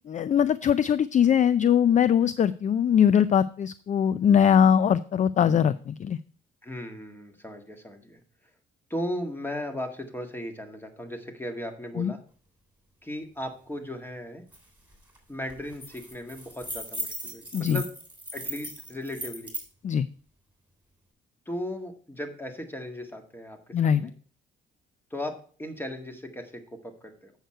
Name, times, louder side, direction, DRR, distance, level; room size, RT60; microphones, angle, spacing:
voice 1, 0.0-6.2 12.0-12.1 17.5-17.8 19.8-20.1 23.7-24.1, left 8 dB, 40° left, 16 dB, 0.4 m, -21 dB
voice 2, 6.6-8.2 8.9-12.2 13.0-14.4 15.3-17.9 18.3-19.5 21.5-24.1 25.1-27.3, left 1 dB, 10° left, 5 dB, 1.8 m, -36 dB
sound 1, 14.5-14.6 14.9-15.2 15.5-19.7, right 1 dB, 10° right, 3.3 m, -38 dB
8.0 x 6.5 x 4.4 m, 0.44 s
cardioid pair, 90°, 20 cm